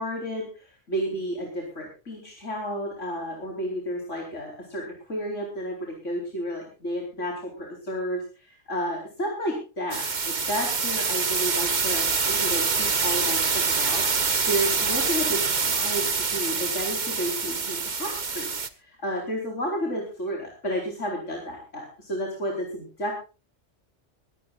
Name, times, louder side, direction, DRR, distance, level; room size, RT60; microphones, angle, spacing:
voice 1, 0.0-18.5 18.8-23.1, equal, 80° left, 0 dB, 4.8 m, -32 dB
sound 1, 9.9-18.7, right 5 dB, 40° right, 1.3 m, -25 dB
21.5 x 17.5 x 2.5 m, 0.34 s
omnidirectional pair, 1.2 m